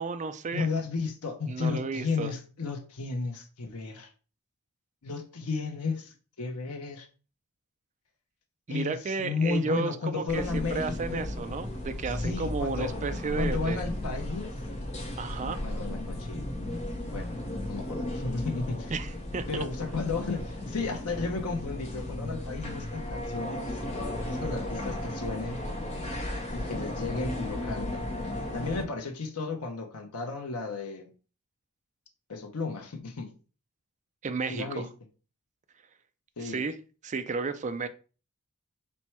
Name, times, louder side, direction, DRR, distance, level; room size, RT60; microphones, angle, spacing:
voice 1, 0.0-0.7 1.5-2.3 8.7-13.8 15.2-15.6 18.9-19.6 34.2-34.9 36.4-36.8 37.0-37.9, right 4 dB, 35° right, 9 dB, 0.4 m, -33 dB
voice 2, 0.5-4.1 5.0-7.1 8.7-10.8 11.1-11.3 12.2-12.9 13.4-14.5 15.4-16.4 17.1-17.3 17.7-18.9 19.5-23.8 24.2-25.6 26.5-28.1 28.5-31.1 32.3-33.3 34.5-34.8 36.4-36.6, left 4 dB, 80° left, 3 dB, 0.7 m, -33 dB
sound 1, 10.3-28.8, left 1 dB, 30° left, 0.8 m, -35 dB
4.3 x 2.2 x 4.3 m, 0.36 s
head